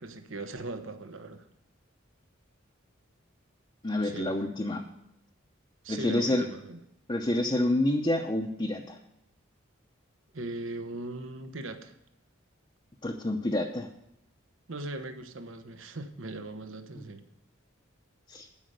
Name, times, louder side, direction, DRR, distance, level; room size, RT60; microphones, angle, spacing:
voice 1, 0.0-1.5 4.0-4.4 5.8-6.8 10.3-12.0 14.7-17.2, right 2 dB, 75° right, 8 dB, 1.1 m, -39 dB
voice 2, 3.8-4.8 5.9-6.4 7.1-9.0 13.0-13.9 18.3-18.5, left 1 dB, 25° left, 0 dB, 0.7 m, -28 dB
11.5 x 5.6 x 7.9 m, 0.82 s
head